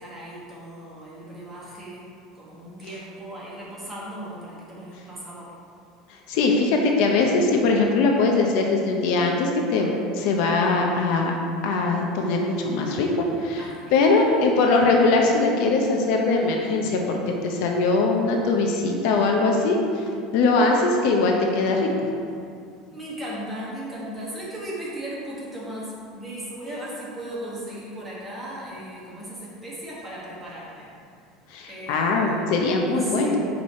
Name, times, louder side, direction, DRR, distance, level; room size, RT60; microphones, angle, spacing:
voice 1, 0.0-2.1 2.3-5.5 13.5-14.0 14.3-14.4 22.9-30.9 31.7-32.5 32.9-33.4, right 1 dB, 10° right, -7 dB, 1.2 m, -36 dB
voice 2, 6.1-11.3 11.6-20.0 20.3-21.9 31.5-33.4, left 3 dB, 55° left, 1 dB, 0.6 m, -21 dB
5.5 x 4.7 x 4.2 m, 2.4 s
cardioid pair, 175°, 0 cm